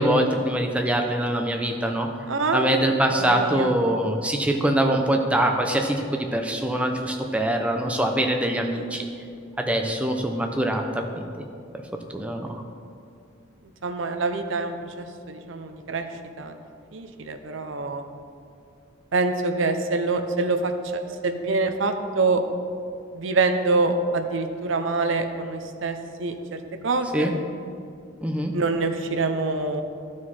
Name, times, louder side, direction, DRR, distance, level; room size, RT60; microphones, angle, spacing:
voice 1, 0.0-2.1 2.5-9.1 9.6-11.3 12.1-12.6 27.1-27.3 28.2-28.5, right 1 dB, 5° right, 3 dB, 0.5 m, -23 dB
voice 2, 2.3-2.7 3.1-3.7 13.8-16.1 16.4-16.6 16.9-18.0 19.1-22.4 23.1-26.6 26.8-27.3 28.5-29.8, right 3 dB, 70° right, 7 dB, 0.6 m, -25 dB
12.5 x 4.8 x 4.2 m, 2.4 s
head